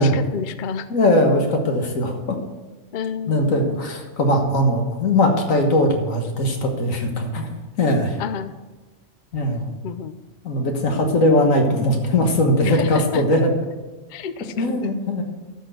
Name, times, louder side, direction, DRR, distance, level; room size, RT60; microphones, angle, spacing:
voice 1, 0.0-0.9 2.9-3.8 8.2-8.5 9.8-10.2 12.6-13.2 14.1-14.9, left 7 dB, 55° left, 12 dB, 0.5 m, -30 dB
voice 2, 0.9-2.4 3.3-7.5 7.8-8.2 9.3-9.7 10.4-13.5 14.6-15.2, left 1 dB, 75° left, 3 dB, 1.8 m, -20 dB
12.5 x 4.4 x 7.8 m, 1.2 s
omnidirectional pair, 1.4 m